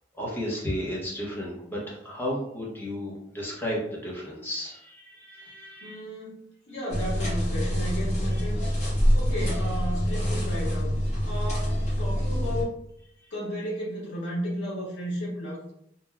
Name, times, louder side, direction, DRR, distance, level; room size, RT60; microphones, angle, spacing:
voice 1, 0.2-6.0 8.3-8.4 13.2-13.3, equal, 10° left, -4 dB, 0.7 m, -33 dB
voice 2, 5.8-8.6 9.1-10.9 11.3-12.8 13.3-15.6, equal, 75° left, -5 dB, 1.5 m, -34 dB
sound 1, 6.9-12.6, equal, 35° left, 1.1 m, -26 dB
3.2 x 2.1 x 2.2 m, 0.74 s
head